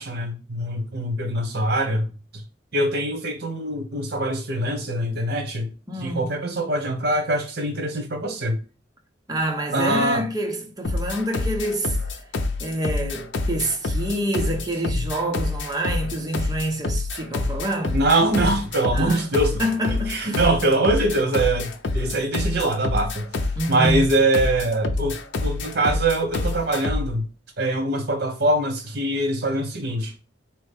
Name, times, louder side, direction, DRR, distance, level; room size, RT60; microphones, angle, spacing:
voice 1, 0.0-2.1 2.3-2.4 2.7-5.7 6.0-8.6 9.7-10.2 17.9-23.3 23.7-27.2 27.6-30.1, right 2 dB, 60° right, 1.0 m, -23 dB
voice 2, 5.9-6.3 9.3-12.2 12.6-18.0 18.9-19.3 19.6-20.4 23.6-24.1, right 1 dB, 20° right, 0.8 m, -27 dB
sound 1, 10.8-27.1, left 3 dB, 80° left, 0.6 m, -27 dB
4.4 x 3.0 x 3.4 m
head